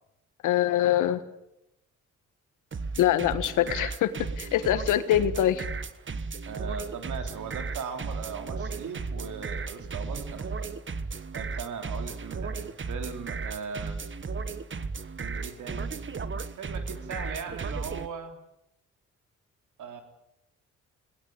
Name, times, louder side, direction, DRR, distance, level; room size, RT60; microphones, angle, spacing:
voice 1, 0.4-1.2 3.0-5.7, left 12 dB, 80° left, 12 dB, 1.5 m, -24 dB
sound 1, 2.7-18.1, right 4 dB, 40° right, 1.4 m, -35 dB
voice 2, 6.5-10.7 11.3-14.0 15.2-16.0 16.6-18.4 19.8-20.0, right 6 dB, 75° right, 6 dB, 3.5 m, -39 dB
21.5 x 18.5 x 8.8 m, 0.84 s
supercardioid pair, 55°, 31 cm